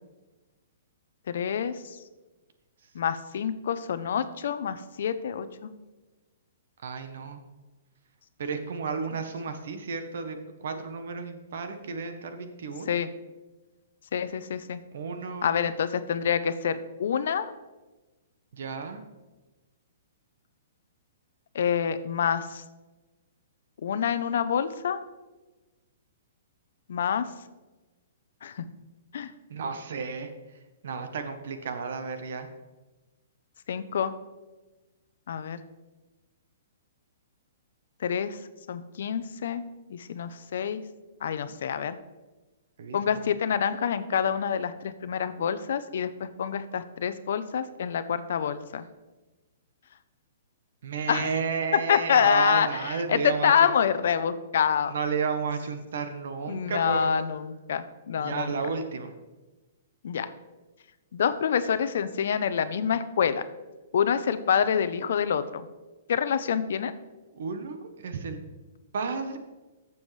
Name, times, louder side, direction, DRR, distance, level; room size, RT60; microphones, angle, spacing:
voice 1, 1.3-2.0 2.9-5.7 12.9-13.1 14.1-14.8 15.4-17.5 21.5-22.6 23.8-25.0 26.9-27.3 28.4-28.7 29.1-29.3 33.7-34.1 35.3-35.6 38.0-38.4 38.7-39.6 39.9-40.8 41.2-42.0 42.9-48.8 51.1-51.3 51.9-54.9 56.5-58.5 60.0-60.3 61.1-63.4 63.9-65.7 66.1-66.9, left 7 dB, 55° left, 12 dB, 0.6 m, -27 dB
voice 2, 6.8-7.4 8.4-10.4 10.6-13.0 14.9-15.7 18.6-19.0 29.5-30.3 30.8-32.5 42.8-43.0 50.8-53.5 54.9-57.1 58.2-59.1 67.3-68.4 68.9-69.4, right 5 dB, 55° right, 8 dB, 0.9 m, -32 dB
13.5 x 7.0 x 3.2 m, 1.2 s
hypercardioid pair, 175°, 0 cm